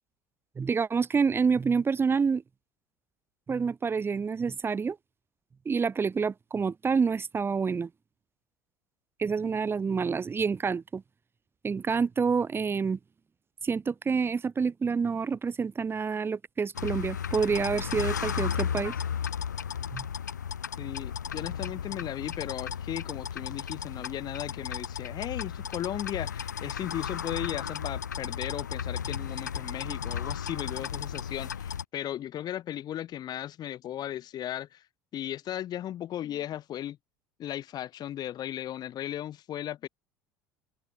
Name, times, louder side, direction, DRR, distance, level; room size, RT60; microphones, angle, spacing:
voice 1, 0.6-2.4 3.5-5.0 5.6-7.9 9.2-11.0 11.6-13.0 13.6-18.9 19.9-20.1, right 5 dB, 25° right, 1.4 m, -28 dB
sound 1, 16.7-31.8, left 8 dB, 90° left, 1.3 m, -34 dB
voice 2, 20.8-34.8 35.1-37.0 37.4-39.9, left 12 dB, 45° left, 3.3 m, -36 dB
hypercardioid pair, 70°, 9 cm